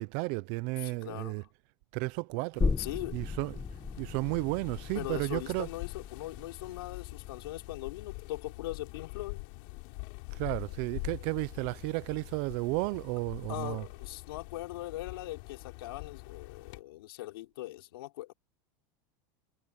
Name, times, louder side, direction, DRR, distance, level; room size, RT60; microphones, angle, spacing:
voice 1, 0.0-1.4 1.9-2.8 3.1-3.6 4.0-5.7 10.3-13.8, right 25 dB, 50° right, 0.6 m, -33 dB
voice 2, 0.8-1.4 2.8-3.2 4.9-9.4 13.5-18.3, left 17 dB, 85° left, 4.7 m, -40 dB
sound 1, 2.5-16.8, left 33 dB, 55° left, 4.5 m, -45 dB
sound 2, 2.6-9.9 10.2-10.3, left 4 dB, 10° left, 1.4 m, -37 dB
supercardioid pair, 165°, 12 cm